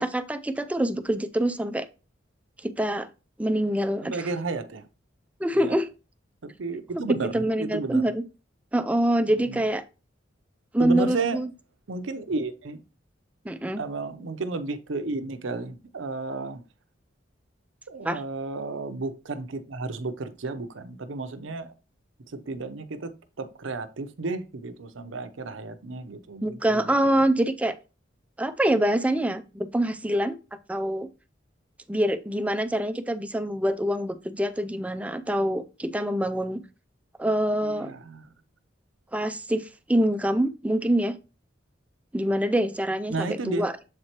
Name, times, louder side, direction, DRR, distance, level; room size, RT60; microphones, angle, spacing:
voice 1, 0.0-1.9 2.6-3.1 3.4-4.2 5.4-5.9 7.1-8.2 8.7-9.8 10.7-11.5 13.4-13.8 18.1-18.2 26.4-27.7 28.4-30.4 30.7-31.1 31.9-36.6 37.2-37.9 39.1-41.1 42.1-43.7, right 1 dB, 5° right, 0.4 m, -25 dB
voice 2, 4.0-4.9 5.5-5.8 6.4-8.0 9.3-9.6 10.8-11.4 11.9-12.8 13.8-16.6 17.9-21.7 22.3-23.1 23.4-27.2 37.6-38.3 43.1-43.7, right 3 dB, 75° right, 0.7 m, -33 dB
7.4 x 4.4 x 2.9 m
head